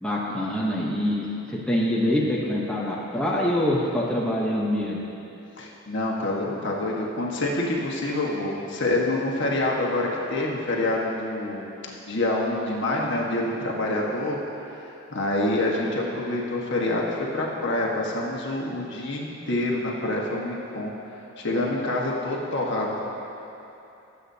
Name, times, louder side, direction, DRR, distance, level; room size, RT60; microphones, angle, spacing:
voice 1, 0.0-5.0, left 1 dB, 5° left, -5 dB, 0.9 m, -25 dB
voice 2, 5.6-11.7 12.0-14.4 15.1-20.9 21.4-23.0, left 2 dB, 55° left, -3 dB, 1.4 m, -26 dB
19.0 x 8.2 x 2.8 m, 2.9 s
head